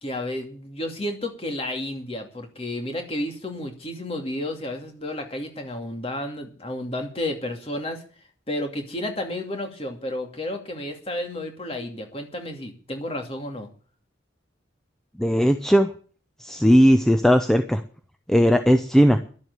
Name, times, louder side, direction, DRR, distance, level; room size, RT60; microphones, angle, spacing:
voice 1, 0.0-8.0 8.5-13.7, left 1 dB, 30° left, 4 dB, 2.5 m, -31 dB
voice 2, 15.2-15.9 16.4-17.8 18.3-19.2, equal, ahead, 7 dB, 0.6 m, -17 dB
12.0 x 7.8 x 9.6 m, 0.41 s
head